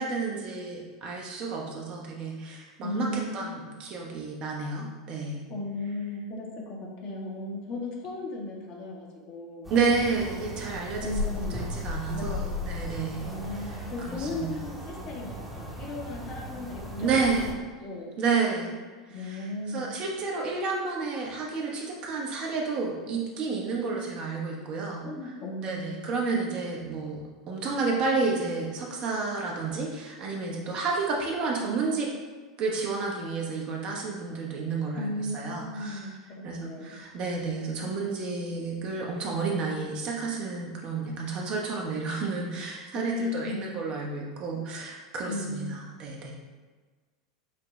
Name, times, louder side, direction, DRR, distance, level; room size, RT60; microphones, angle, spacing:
voice 1, 0.0-5.4 9.7-13.3 14.1-14.5 17.0-17.5 18.2-18.8 19.2-25.1 25.6-32.1 32.6-36.0 36.4-46.3, right 4 dB, 45° right, -1 dB, 0.8 m, -31 dB
voice 2, 2.8-3.5 5.5-9.7 11.0-11.6 12.1-12.7 13.2-17.2 17.8-18.1 19.1-19.9 25.0-26.2 35.0-37.0 42.9-43.7 45.2-45.7, left 2 dB, 45° left, -1 dB, 0.9 m, -36 dB
sound 1, 9.6-17.5, left 1 dB, 5° right, 0.9 m, -36 dB
5.8 x 2.2 x 3.1 m, 1.4 s
hypercardioid pair, 90°, 2 cm